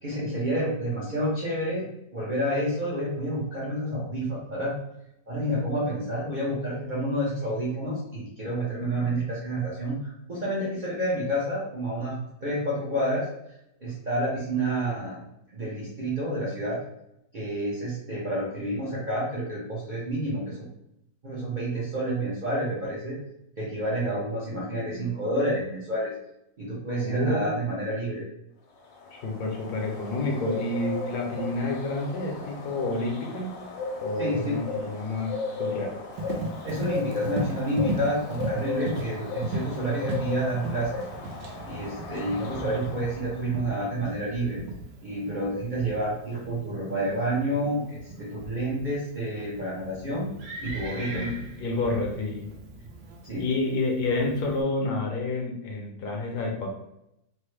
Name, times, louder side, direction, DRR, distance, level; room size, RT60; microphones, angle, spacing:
voice 1, 0.0-4.8 5.3-13.3 13.8-15.2 15.5-16.8 17.3-20.7 21.2-23.2 23.6-26.1 26.6-28.2 34.2-34.6 36.6-41.0 41.6-44.6 45.0-51.3 53.2-53.5, right 1 dB, 60° right, -7 dB, 0.5 m, -29 dB
voice 2, 27.0-27.4 29.1-33.5 34.0-35.9 51.1-51.3 51.6-52.5 53.4-56.7, left 2 dB, 70° left, 1 dB, 1.2 m, -29 dB
sound 1, 28.8-43.4, left 3 dB, 90° left, 1.3 m, -35 dB
Livestock farm animals working animals, 36.1-54.6, right 1 dB, 85° right, 1.3 m, -38 dB
3.4 x 2.1 x 3.1 m, 0.82 s
omnidirectional pair, 1.9 m